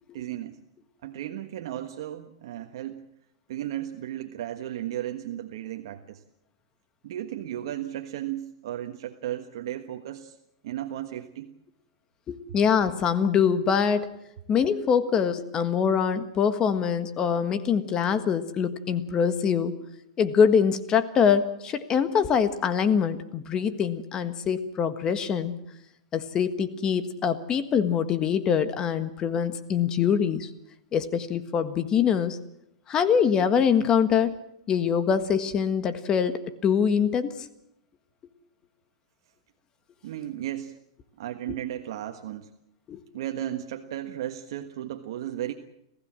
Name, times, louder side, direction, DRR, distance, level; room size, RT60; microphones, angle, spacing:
voice 1, 0.1-0.6 1.0-3.0 3.5-6.2 7.0-10.4 10.6-11.5 40.0-40.8 41.2-42.5 43.1-45.5, right 12 dB, 65° right, 5 dB, 1.4 m, -35 dB
voice 2, 12.3-14.2 14.5-19.7 20.2-25.6 26.1-30.5 30.9-32.4 32.9-34.3 34.7-37.3 42.9-43.0, left 7 dB, 25° left, 10 dB, 1.6 m, -24 dB
26.5 x 16.0 x 7.6 m, 0.82 s
hypercardioid pair, 130°, 3 cm